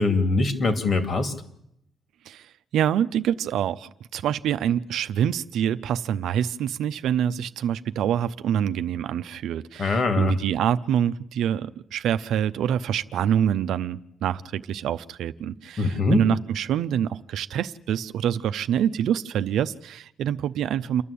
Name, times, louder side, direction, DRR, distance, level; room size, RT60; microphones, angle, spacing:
voice 1, 0.0-1.3 9.8-10.3 15.8-16.2, left 3 dB, 45° left, 9 dB, 2.6 m, -22 dB
voice 2, 2.3-21.0, right 9 dB, 75° right, 12 dB, 0.7 m, -26 dB
28.5 x 11.0 x 8.5 m, 0.78 s
cardioid pair, 90°, 0 cm